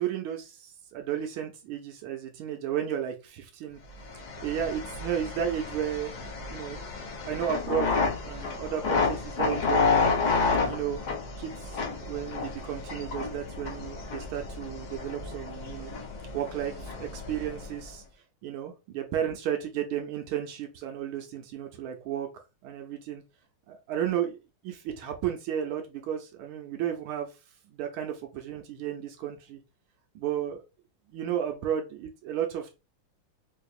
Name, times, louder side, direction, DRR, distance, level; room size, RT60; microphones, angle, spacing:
voice 1, 0.0-3.8 4.1-6.8 7.2-7.9 8.2-9.9 10.6-11.0 11.4-11.5 12.0-15.9 16.3-18.0 18.4-22.3 22.6-23.2 23.7-27.3 27.7-29.6 30.1-30.6 31.1-32.7, right 10 dB, 80° right, 1.5 m, -33 dB
sound 1, 4.0-17.9, left 4 dB, 55° left, 1.3 m, -30 dB
4.4 x 2.7 x 2.4 m
omnidirectional pair, 2.3 m